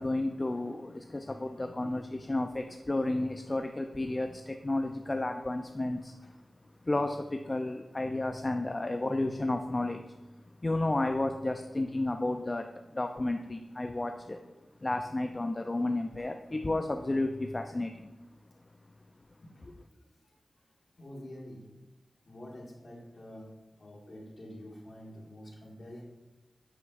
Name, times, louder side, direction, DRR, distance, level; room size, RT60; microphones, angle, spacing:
voice 1, 0.0-6.4 6.7-14.4 14.8-18.1 19.7-19.8, left 2 dB, 35° left, 0.4 m, -32 dB
voice 2, 21.0-21.7 22.3-23.5 23.8-26.0, left 1 dB, 55° left, 1.8 m, -47 dB
9.0 x 5.9 x 2.5 m
cardioid pair, 45°, 0 cm